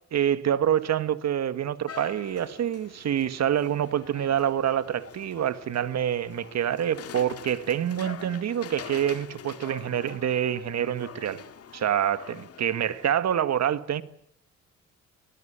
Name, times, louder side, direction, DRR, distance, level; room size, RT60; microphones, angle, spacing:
voice 1, 0.1-11.4 11.7-14.0, right 10 dB, 60° right, 1.7 m, -26 dB
sound 1, 1.9-13.1, left 8 dB, 50° left, 1.9 m, -45 dB
25.5 x 18.5 x 8.8 m
cardioid pair, 90°, 30 cm